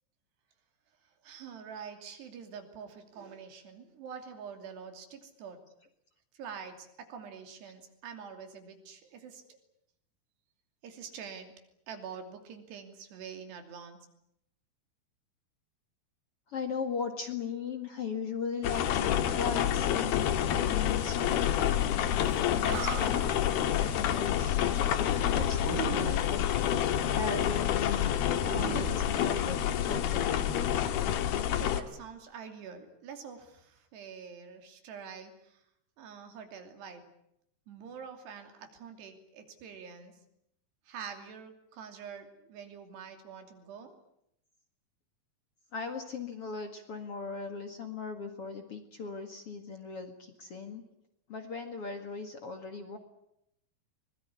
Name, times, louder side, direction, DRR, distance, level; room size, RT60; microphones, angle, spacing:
voice 1, 1.2-5.6 6.4-9.6 10.8-11.5 11.9-14.0 31.4-35.3 36.0-37.1 37.7-40.2 40.9-43.9, right 6 dB, 80° right, 6 dB, 5.0 m, -46 dB
voice 2, 16.5-26.5 27.1-28.2 28.4-30.4 45.7-50.8 51.3-53.0, left 5 dB, 45° left, 6 dB, 2.2 m, -38 dB
sound 1, 18.6-31.8, left 10 dB, 70° left, 3.2 m, -28 dB
Animal, 22.3-22.4 22.6-23.4 25.6-26.5 28.5-29.8, right 9 dB, 65° right, 3.2 m, -38 dB
24.0 x 21.0 x 9.8 m, 0.78 s
omnidirectional pair, 4.7 m